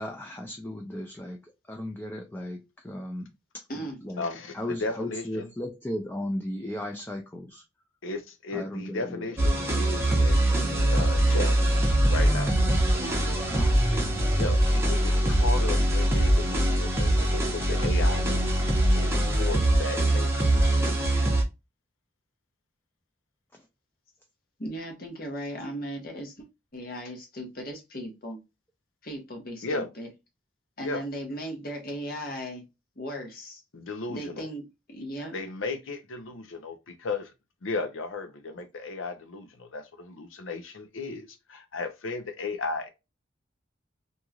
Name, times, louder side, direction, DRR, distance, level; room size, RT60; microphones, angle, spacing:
voice 1, 0.0-4.2 4.5-7.6 8.5-9.3 13.5-13.7 15.1-15.5 23.5-23.6, left 1 dB, 10° left, 0.4 m, -36 dB
voice 2, 4.2-5.5 8.0-11.6 12.1-12.6 13.9-14.0 14.4-20.5 29.6-29.9 30.8-31.0 33.7-34.5 35.3-37.3 37.6-42.9, left 3 dB, 85° left, 0.7 m, -35 dB
sound 1, 9.4-21.4, right 1 dB, 15° right, 0.7 m, -23 dB
voice 3, 24.6-26.5 26.7-28.4 29.0-30.1 30.8-32.6 33.0-33.6 34.1-35.3, equal, 50° left, 1.1 m, -37 dB
3.1 x 2.7 x 2.3 m
head